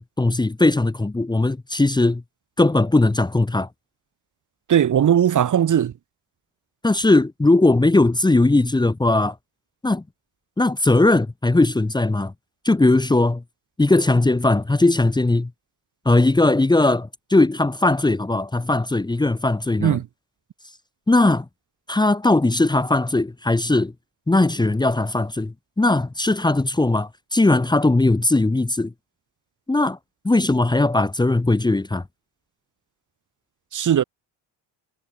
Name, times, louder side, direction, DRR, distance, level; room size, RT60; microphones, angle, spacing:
voice 1, 0.0-2.2 2.6-3.7 6.8-9.4 9.8-10.0 10.6-12.3 12.6-13.4 13.8-15.5 16.1-20.0 21.1-21.5 21.9-23.9 24.3-28.9 29.7-30.0 30.2-32.0, left 2 dB, 10° left, 2.0 m, -19 dB
voice 2, 4.7-5.9 19.8-20.1 33.7-34.0, right 9 dB, 40° right, 2.9 m, -18 dB
cardioid pair, 160°, 45 cm